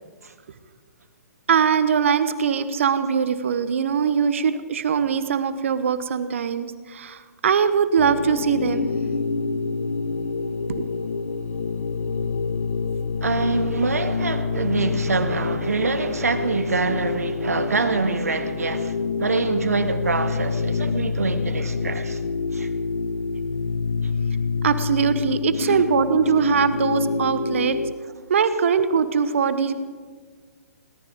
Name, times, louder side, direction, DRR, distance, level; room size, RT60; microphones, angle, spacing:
voice 1, 1.5-8.9 10.7-10.9 24.6-27.8 28.3-29.7, right 7 dB, 50° right, 1.1 m, -22 dB
sound 1, 8.0-27.9, left 4 dB, 60° left, 0.8 m, -27 dB
voice 2, 13.2-22.2 22.5-22.7 25.6-25.8, right 4 dB, 70° right, 1.6 m, -25 dB
22.0 x 18.0 x 3.7 m
figure-of-eight pair, 125°, 9 cm